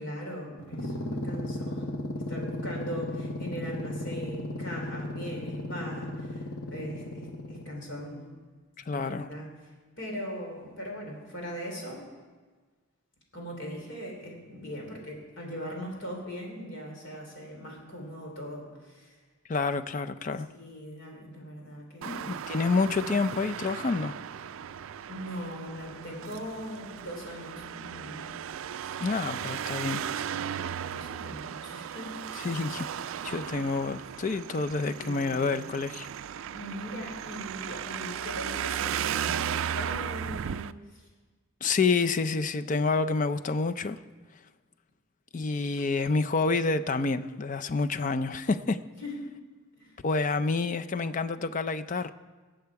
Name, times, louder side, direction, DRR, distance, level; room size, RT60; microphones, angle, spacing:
voice 1, 0.0-8.3 8.9-12.0 13.3-19.1 20.5-22.4 25.1-28.3 28.8-29.0 30.1-32.2 35.0-35.6 36.5-41.1 49.0-49.3 49.8-50.0, equal, 55° left, 0 dB, 3.2 m, -40 dB
sound 1, 0.6-7.9, left 1 dB, 75° left, 1.2 m, -35 dB
voice 2, 8.9-9.3 19.5-20.5 22.1-24.2 29.0-30.0 32.4-32.9 33.2-36.1 41.6-44.0 45.3-48.8 50.0-52.1, left 4 dB, 35° left, 11 dB, 0.4 m, -28 dB
Traffic noise roadway noise, 22.0-40.7, right 9 dB, 65° right, 0.3 m, -36 dB
19.5 x 7.8 x 4.7 m, 1.4 s
head